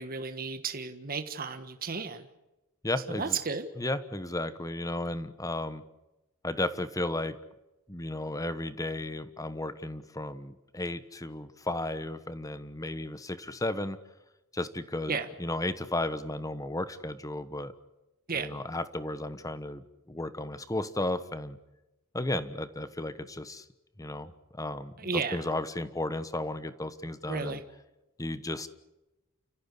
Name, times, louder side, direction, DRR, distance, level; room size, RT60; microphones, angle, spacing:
voice 1, 0.0-2.3 3.1-3.7 15.1-15.3 18.3-18.6 25.0-25.4 27.3-27.6, right 5 dB, 45° right, 8 dB, 1.4 m, -33 dB
voice 2, 2.8-3.4 3.8-5.8 6.4-7.4 7.9-14.0 14.5-17.7 18.3-21.6 22.1-23.6 24.0-27.6 28.2-28.7, left 1 dB, 15° left, 13 dB, 1.2 m, -34 dB
29.5 x 15.0 x 8.5 m, 0.99 s
head